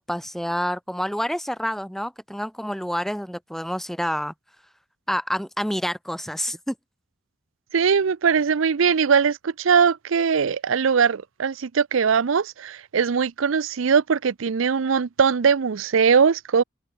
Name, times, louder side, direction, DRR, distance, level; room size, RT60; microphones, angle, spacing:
voice 1, 0.0-4.3 5.1-6.7, equal, ahead, 1.9 m, -28 dB
voice 2, 7.7-16.6, right 6 dB, 75° right, 0.5 m, -20 dB
open air
head